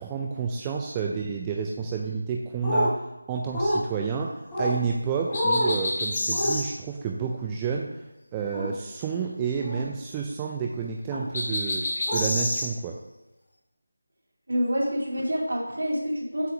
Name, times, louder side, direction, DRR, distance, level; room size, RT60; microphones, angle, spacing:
voice 1, 0.0-3.0 3.3-7.9 8.3-13.0, right 6 dB, 10° right, 0 dB, 0.3 m, -30 dB
sound 1, 2.6-2.9 3.5-3.8 4.5-4.8 5.3-5.7 6.3-6.5 8.5-8.7 9.6-9.8 11.1-11.3 12.1-12.2, equal, 5° left, 1.4 m, -26 dB
sound 2, 5.3-6.7 11.3-12.7, left 1 dB, 30° left, 1.3 m, -28 dB
voice 2, 14.5-16.5, equal, 65° right, -3 dB, 2.2 m, -27 dB
7.8 x 2.8 x 5.9 m, 0.94 s
figure-of-eight pair, 175°, 0 cm